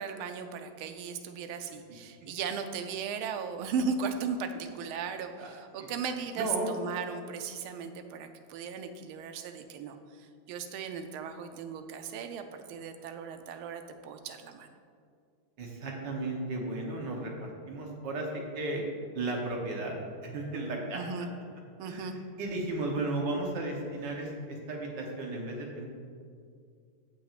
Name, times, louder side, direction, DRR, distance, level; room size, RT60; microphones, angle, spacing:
voice 1, 0.0-14.7 20.9-21.3 21.8-22.1, right 6 dB, 85° right, 7 dB, 1.5 m, -37 dB
voice 2, 6.4-6.7 15.6-18.8 19.1-19.9 20.2-21.0 21.8-25.9, right 2 dB, 60° right, 0 dB, 1.6 m, -34 dB
15.5 x 5.9 x 2.5 m, 2.2 s
omnidirectional pair, 2.3 m